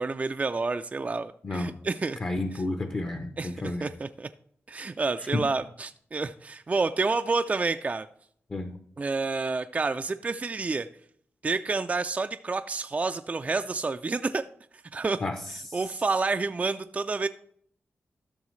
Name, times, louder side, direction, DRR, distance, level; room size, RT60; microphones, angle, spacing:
voice 1, 0.0-2.2 3.4-4.3 4.7-8.1 9.0-10.9 11.4-14.4 14.9-15.2 15.7-17.3, right 3 dB, 30° right, 8 dB, 0.3 m, -29 dB
voice 2, 1.4-1.7 2.2-3.9 5.2-5.5 8.5-8.8 15.2-15.8, left 2 dB, 40° left, 7 dB, 0.7 m, -31 dB
13.5 x 6.2 x 3.1 m, 0.64 s
wide cardioid pair, 85°, 5 cm